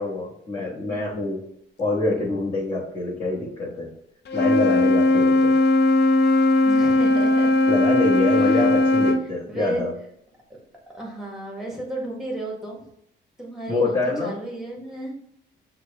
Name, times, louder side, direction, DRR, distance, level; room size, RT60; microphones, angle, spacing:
voice 1, 0.0-1.4 1.8-3.9 4.3-5.6 7.7-9.9 13.7-14.4, left 2 dB, 25° left, -8 dB, 1.4 m, -26 dB
Wind instrument woodwind instrument, 4.3-9.2, left 2 dB, 60° left, 0.7 m, -18 dB
voice 2, 6.6-7.6 8.4-9.1 9.5-9.8 10.9-12.9 13.4-15.1, right 1 dB, ahead, -2 dB, 1.5 m, -33 dB
6.0 x 2.4 x 3.3 m, 0.71 s
cardioid pair, 90°, 20 cm